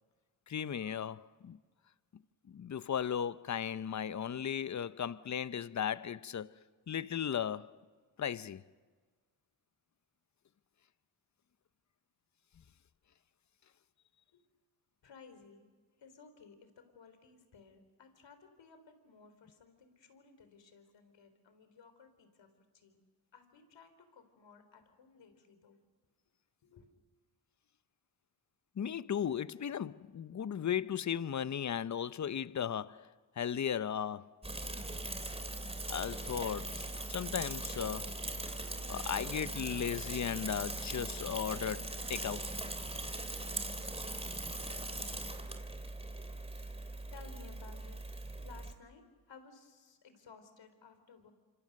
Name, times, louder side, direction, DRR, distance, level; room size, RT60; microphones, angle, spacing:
voice 1, 0.5-1.6 2.5-6.5 6.9-7.7 8.2-8.6 28.8-33.1 33.4-34.3 35.9-42.5, left 8 dB, 40° left, 0.8 m, -36 dB
voice 2, 15.0-15.7 16.0-22.5 22.7-23.0 23.3-25.8 26.6-26.9 46.0-48.0 48.4-51.3, left 5 dB, 70° left, 3.9 m, -58 dB
Bicycle / Mechanisms, 34.4-48.7, right 2 dB, 15° right, 2.9 m, -40 dB
26.0 x 26.0 x 6.6 m
cardioid pair, 65°, 46 cm